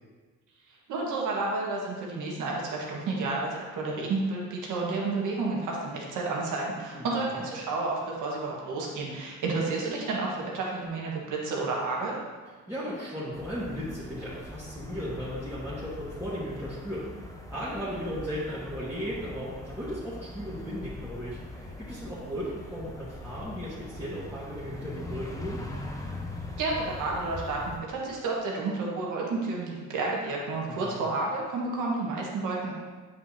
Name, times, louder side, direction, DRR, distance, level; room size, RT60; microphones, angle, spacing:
voice 1, 0.9-12.2 26.6-32.7, right 3 dB, 85° right, -3 dB, 1.7 m, -31 dB
voice 2, 6.9-7.5 12.7-17.1 17.5-25.6 30.6-31.1, equal, 5° right, -12 dB, 1.8 m, -36 dB
sound 1, 13.3-27.8, left 1 dB, 10° left, 1.0 m, -41 dB
8.3 x 5.4 x 2.9 m, 1.4 s
cardioid pair, 90°, 30 cm